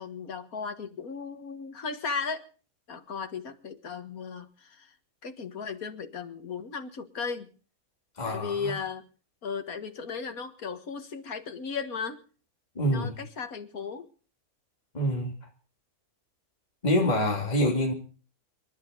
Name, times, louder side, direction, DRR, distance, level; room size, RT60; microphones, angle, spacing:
voice 1, 0.0-2.5 2.9-5.0 5.2-7.5 8.2-9.1 9.4-12.2 12.8-14.1, left 5 dB, 75° left, 2.1 m, -36 dB
voice 2, 8.2-8.8 12.7-13.2 14.9-15.3 16.8-17.9, equal, 30° left, 2.8 m, -26 dB
27.5 x 12.0 x 3.9 m
omnidirectional pair, 1.6 m